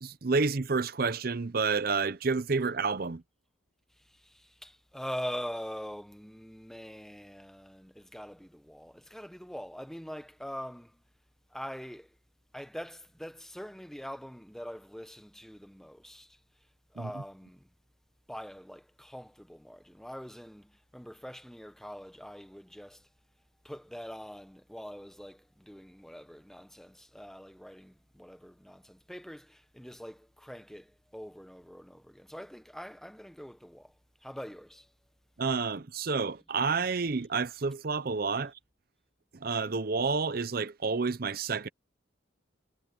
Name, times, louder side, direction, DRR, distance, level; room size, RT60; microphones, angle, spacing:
voice 1, 0.0-3.2 17.0-17.2 35.4-38.5 39.4-41.7, right 4 dB, 50° right, 0.6 m, -29 dB
voice 2, 4.0-11.0 11.5-12.1 12.5-16.4 16.9-17.7 18.3-23.1 23.6-33.9 34.2-34.9, equal, ahead, 1.0 m, -44 dB
head